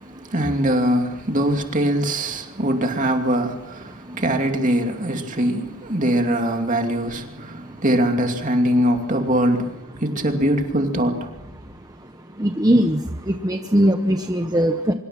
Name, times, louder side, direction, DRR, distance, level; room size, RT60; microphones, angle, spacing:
voice 1, 0.0-11.4, right 1 dB, 35° right, 2.6 m, -22 dB
voice 2, 12.4-13.0 13.3-14.9, equal, 15° right, 0.9 m, -19 dB
25.0 x 23.0 x 6.0 m
head